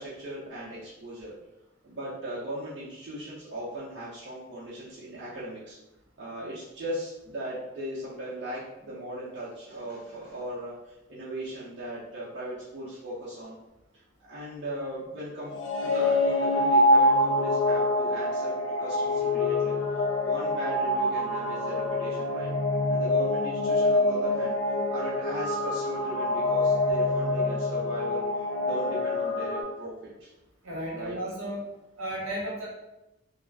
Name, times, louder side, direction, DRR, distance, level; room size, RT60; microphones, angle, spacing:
voice 1, 0.0-1.3 1.8-5.8 6.2-13.6 14.3-22.5 22.9-24.5 24.9-28.2 28.6-29.9 30.2-30.3 30.9-31.1, right 1 dB, 55° right, -10 dB, 0.7 m, -38 dB
sound 1, 15.5-29.6, left 1 dB, 65° left, 0.4 m, -25 dB
voice 2, 30.6-31.6 32.0-32.7, equal, 80° right, -4 dB, 1.0 m, -34 dB
2.4 x 2.1 x 3.3 m, 0.93 s
head